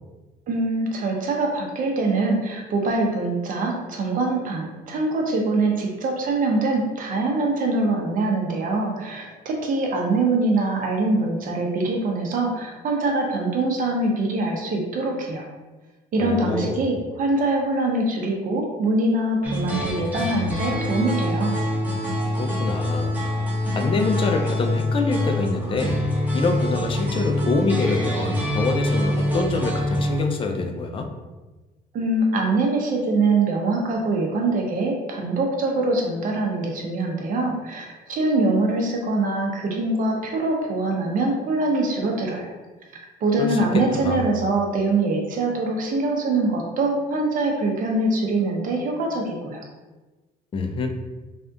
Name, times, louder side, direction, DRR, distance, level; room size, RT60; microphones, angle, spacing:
voice 1, 0.5-15.4 16.1-21.5 31.9-42.5 43.2-49.7, right 2 dB, 55° right, 0 dB, 0.7 m, -23 dB
voice 2, 16.2-16.9 22.4-23.1 23.7-26.0 26.3-31.1 43.4-44.3 50.5-50.9, left 3 dB, 30° left, 5 dB, 0.4 m, -25 dB
sound 1, 19.4-30.2, left 1 dB, 10° right, 0.8 m, -25 dB
3.4 x 2.3 x 2.6 m, 1.2 s
cardioid pair, 110°, 17 cm